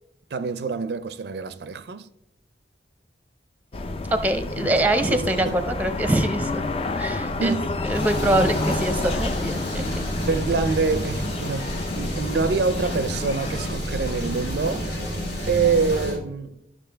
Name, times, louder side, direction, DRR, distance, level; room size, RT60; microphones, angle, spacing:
voice 1, 0.3-2.1 4.6-4.7 5.1-5.5 7.4-7.8 10.3-15.1 15.5-16.6, right 5 dB, 60° right, 0.4 m, -26 dB
sound 1, 3.7-13.7, left 2 dB, 30° left, 0.4 m, -30 dB
voice 2, 4.1-6.6 7.0-7.6 7.8-9.8, right 1 dB, 10° right, 0.6 m, -24 dB
sound 2, 7.9-16.2, equal, 85° left, 2.4 m, -30 dB
12.5 x 5.9 x 3.4 m
head